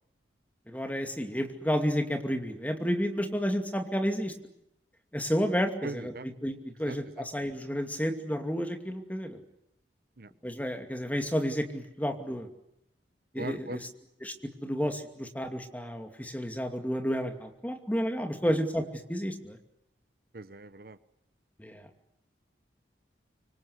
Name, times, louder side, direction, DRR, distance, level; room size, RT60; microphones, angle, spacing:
voice 1, 0.7-4.3 5.1-9.4 10.4-12.5 13.3-13.8 14.2-14.3 14.6-18.8 19.1-19.6 21.6-21.8, equal, 10° left, 5 dB, 2.6 m, -31 dB
voice 2, 5.8-6.3 6.8-7.3 10.2-10.3 13.4-13.8 18.5-18.6 20.3-21.0, right 2 dB, 55° right, 13 dB, 0.9 m, -40 dB
25.5 x 24.5 x 8.1 m, 0.83 s
head